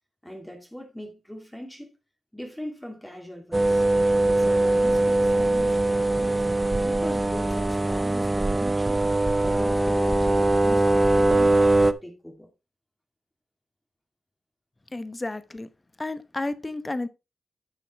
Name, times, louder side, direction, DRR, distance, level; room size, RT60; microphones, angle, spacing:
voice 1, 0.2-2.0 2.3-3.8 4.2-6.5 6.8-9.0 9.4-12.5, equal, 5° left, 2.3 m, -40 dB
sound 1, 3.5-11.9, right 2 dB, 20° right, 0.7 m, -21 dB
voice 2, 14.9-15.7 16.0-17.1, left 2 dB, 25° left, 0.9 m, -32 dB
10.5 x 6.9 x 3.1 m
cardioid pair, 80°, 0 cm